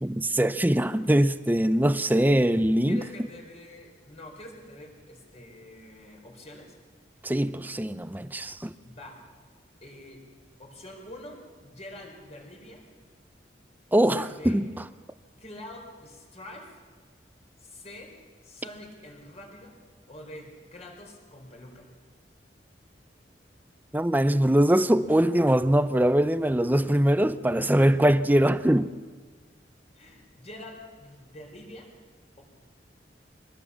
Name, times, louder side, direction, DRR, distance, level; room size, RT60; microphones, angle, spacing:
voice 1, 0.0-3.0 7.2-8.7 13.9-14.6 23.9-28.9, right 1 dB, 10° right, 0.5 m, -22 dB
voice 2, 2.9-6.8 8.7-9.2 9.8-10.2 10.6-12.8 13.9-14.6 15.4-16.8 17.6-18.1 18.4-19.7 20.1-21.9 29.9-31.9, left 1 dB, 35° left, 4.2 m, -46 dB
24.0 x 19.5 x 7.1 m
head